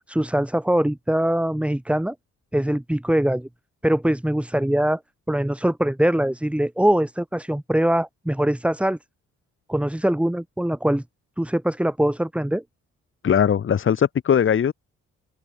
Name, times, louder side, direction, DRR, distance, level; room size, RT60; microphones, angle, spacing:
voice 1, 0.1-2.1 2.5-3.5 3.8-5.0 5.3-9.0 9.7-11.0 11.4-12.6, right 1 dB, 5° right, 2.3 m, -22 dB
voice 2, 13.2-14.7, left 8 dB, 40° left, 1.2 m, -19 dB
open air
cardioid pair, 90°, 30 cm